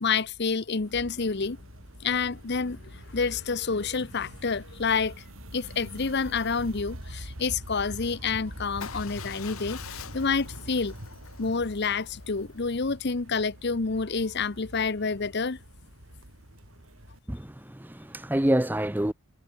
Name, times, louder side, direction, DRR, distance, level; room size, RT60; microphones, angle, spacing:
voice 1, 0.0-1.6 2.0-2.8 3.1-5.2 5.5-10.9 11.4-15.6, left 5 dB, 50° left, 0.8 m, -28 dB
sound 1, 0.9-17.2, right 1 dB, 65° right, 5.4 m, -45 dB
Motorcycle / Engine starting / Idling, 8.8-12.9, left 7 dB, 75° left, 1.7 m, -44 dB
voice 2, 17.3-19.1, right 1 dB, 10° right, 0.7 m, -27 dB
head